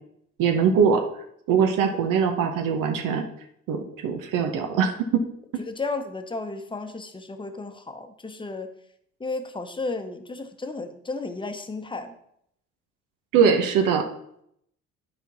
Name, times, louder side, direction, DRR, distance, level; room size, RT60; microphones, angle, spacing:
voice 1, 0.4-1.0 1.5-3.2 3.7-5.2 5.5-5.6 13.3-14.1, right 6 dB, 80° right, 4 dB, 0.9 m, -22 dB
voice 2, 5.6-8.7 9.2-12.1, left 3 dB, 15° left, 8 dB, 0.9 m, -33 dB
9.9 x 4.3 x 4.1 m, 0.73 s
cardioid pair, 90°, 32 cm